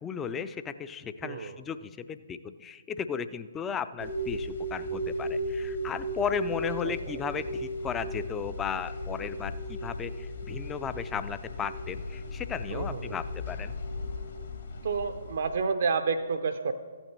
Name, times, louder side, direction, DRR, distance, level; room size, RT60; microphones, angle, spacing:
voice 1, 0.0-13.7, left 7 dB, 15° left, 12 dB, 0.4 m, -35 dB
voice 2, 1.2-1.6 6.8-7.2 12.7-13.2 14.8-16.7, right 5 dB, 50° right, 7 dB, 0.5 m, -30 dB
sound 1, 4.0-15.6, equal, 55° left, 1.5 m, -36 dB
15.0 x 8.9 x 3.2 m, 1.5 s
figure-of-eight pair, 130°, 0 cm